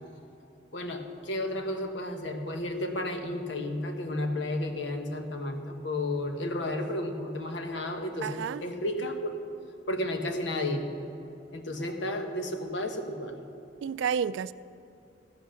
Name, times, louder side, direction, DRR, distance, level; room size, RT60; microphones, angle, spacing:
voice 1, 0.7-9.4 9.9-10.9 11.5-13.3, left 1 dB, 70° left, 4 dB, 1.3 m, -32 dB
voice 2, 8.2-8.6 13.8-14.5, right 7 dB, 90° right, 17 dB, 0.3 m, -30 dB
14.5 x 8.1 x 6.4 m, 2.7 s
head